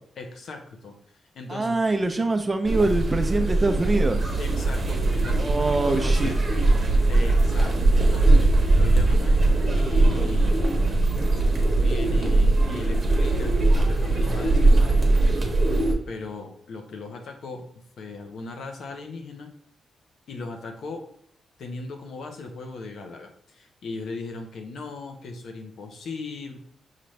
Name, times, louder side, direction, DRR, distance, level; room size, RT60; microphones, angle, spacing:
voice 1, 0.2-0.9 1.3-1.8 4.4-6.4 7.1-10.6 11.7-15.4 16.1-17.6 18.0-19.5 20.3-21.0 21.6-26.6, left 3 dB, 70° left, 4 dB, 0.8 m, -38 dB
voice 2, 1.5-4.3 5.3-6.3, right 2 dB, 25° right, 6 dB, 0.5 m, -24 dB
sound 1, 2.6-15.9, right 2 dB, 40° right, 1.0 m, -20 dB
5.7 x 2.5 x 3.2 m, 0.65 s
cardioid pair, 110°, 0 cm